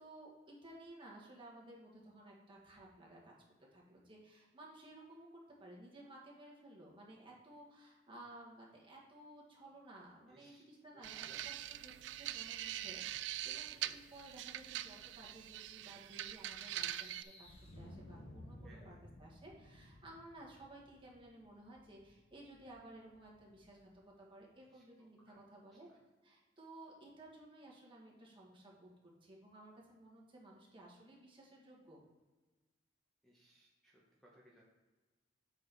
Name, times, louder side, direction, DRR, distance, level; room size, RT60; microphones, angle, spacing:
voice 1, 0.0-3.3 3.7-11.5 11.8-17.5 17.7-25.9 26.2-32.0, right 1 dB, 30° right, -3 dB, 1.9 m, -56 dB
voice 2, 10.3-10.6 11.2-11.5 18.6-19.0 24.7-25.4 25.9-26.0 33.2-34.6, right 1 dB, ahead, -5 dB, 1.1 m, -65 dB
sound 1, 11.0-17.2, right 13 dB, 75° right, 0.3 m, -43 dB
sound 2, 16.3-19.1, left 1 dB, 35° left, 1.3 m, -57 dB
Wind, 17.4-23.9, left 1 dB, 75° left, 1.1 m, -58 dB
7.9 x 4.3 x 4.6 m, 1.2 s
head